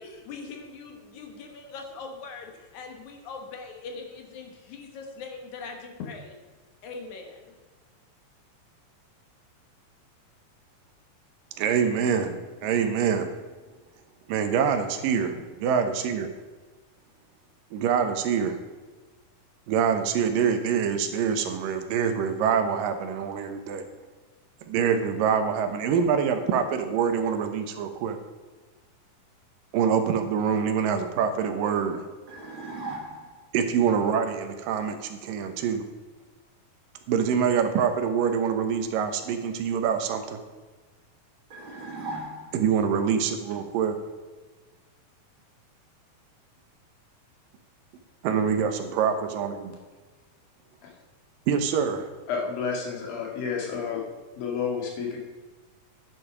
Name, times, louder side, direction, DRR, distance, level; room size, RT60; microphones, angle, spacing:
voice 1, 0.0-6.4 6.8-7.6, left 4 dB, 65° left, 3 dB, 2.6 m, -41 dB
voice 2, 11.6-13.3 14.3-16.3 17.7-18.6 19.7-23.9 24.6-28.2 29.7-32.0 33.5-35.8 37.1-40.4 42.5-44.0 48.2-49.7 51.5-52.1, right 7 dB, 75° right, 7 dB, 2.6 m, -25 dB
sound 1, 32.3-33.5 41.5-42.8, right 2 dB, 45° right, 2.1 m, -38 dB
voice 3, 52.3-54.0 54.4-55.2, left 6 dB, 85° left, 0 dB, 3.8 m, -30 dB
11.0 x 9.3 x 5.0 m, 1.3 s
omnidirectional pair, 4.0 m